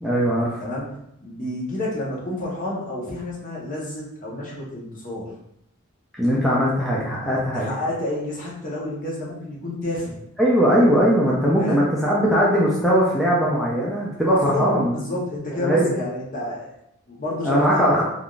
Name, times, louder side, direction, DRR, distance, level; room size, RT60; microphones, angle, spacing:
voice 1, 0.0-0.6 6.2-7.7 10.4-15.0 15.5-15.9 17.4-18.0, equal, ahead, -7 dB, 0.4 m, -20 dB
voice 2, 0.6-5.3 7.5-10.2 11.6-11.9 14.3-14.6 14.9-16.7 17.1-18.0, left 1 dB, 40° left, -5 dB, 0.8 m, -30 dB
3.4 x 2.5 x 2.3 m, 0.78 s
head